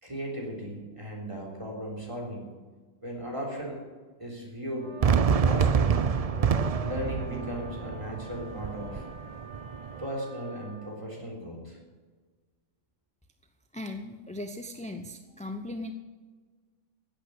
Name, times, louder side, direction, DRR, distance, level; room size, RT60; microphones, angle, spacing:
voice 1, 0.0-2.4 3.0-3.8 4.2-4.9 5.4-6.2 6.8-9.1 10.0-11.8, equal, 25° right, -1 dB, 3.8 m, -36 dB
sound 1, 4.7-11.0, equal, 90° right, 3.8 m, -48 dB
Fireworks, 5.0-10.1, right 6 dB, 50° right, 0.4 m, -27 dB
voice 2, 13.7-15.9, left 1 dB, 10° left, 6 dB, 0.6 m, -38 dB
16.5 x 8.7 x 8.1 m, 1.4 s
omnidirectional pair, 1.3 m